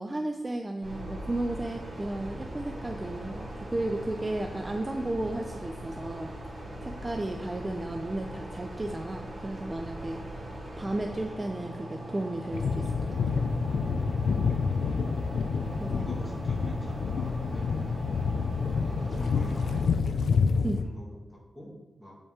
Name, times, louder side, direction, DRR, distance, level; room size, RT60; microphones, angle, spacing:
voice 1, 0.0-6.4 6.8-13.0 13.3-13.4 15.7-16.1 20.6-20.8, right 1 dB, 20° right, 4 dB, 0.4 m, -34 dB
sound 1, 0.8-19.8, right 1 dB, 60° right, 2.5 m, -40 dB
sound 2, 12.5-20.8, left 5 dB, 90° left, 0.4 m, -28 dB
voice 2, 16.0-18.1 18.6-20.2 20.7-22.2, equal, ahead, -3 dB, 1.9 m, -46 dB
8.1 x 5.3 x 3.7 m, 1.2 s
wide cardioid pair, 115°, 0 cm